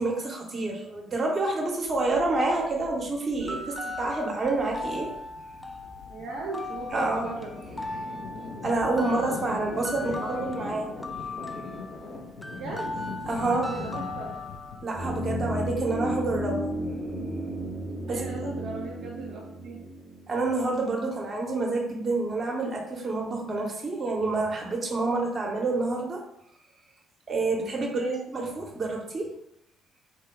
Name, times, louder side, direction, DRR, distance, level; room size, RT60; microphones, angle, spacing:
voice 1, 0.0-5.1 6.9-7.3 8.6-10.8 13.3-13.7 14.8-16.7 18.1-18.2 20.3-26.2 27.3-27.9 28.3-29.3, right 2 dB, 35° right, -1 dB, 0.8 m, -28 dB
sound 1, 1.8-18.8, left 3 dB, 60° left, 1.0 m, -42 dB
sound 2, 3.4-14.8, left 2 dB, 10° left, 0.4 m, -39 dB
voice 2, 6.1-7.5 10.0-10.8 12.5-13.1 13.5-14.3 18.1-19.8 27.9-28.2, right 2 dB, 60° right, -3 dB, 0.5 m, -37 dB
sound 3, 14.9-21.0 21.2-21.3, equal, 25° left, 1.3 m, -33 dB
2.9 x 2.1 x 3.4 m, 0.79 s
figure-of-eight pair, 45°, 0 cm